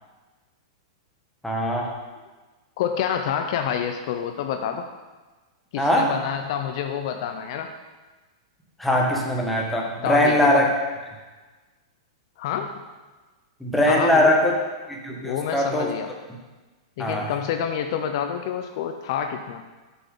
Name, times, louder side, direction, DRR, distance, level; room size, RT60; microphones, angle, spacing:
voice 1, 1.4-1.9 5.8-6.1 8.8-10.7 13.6-14.5 14.9-15.9 17.0-17.3, left 1 dB, 5° left, -2 dB, 1.2 m, -21 dB
voice 2, 2.8-4.8 5.7-7.7 10.0-10.6 12.4-12.7 13.9-14.3 15.2-16.1 17.0-19.6, left 8 dB, 60° left, 6 dB, 0.6 m, -28 dB
6.6 x 6.1 x 3.8 m, 1.3 s
hypercardioid pair, 130°, 3 cm